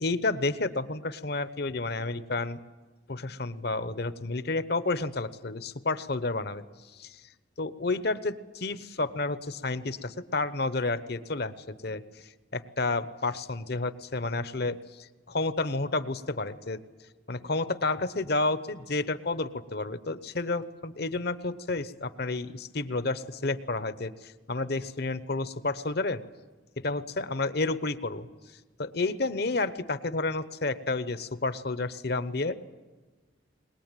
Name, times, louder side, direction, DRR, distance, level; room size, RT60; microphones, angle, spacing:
voice 1, 0.0-2.6 3.1-6.6 7.0-7.2 7.6-12.0 12.5-14.8 15.3-16.8 17.3-26.2 26.8-28.3 28.8-32.5, left 3 dB, 55° left, 13 dB, 1.0 m, -30 dB
22.0 x 20.0 x 9.1 m, 1.3 s
head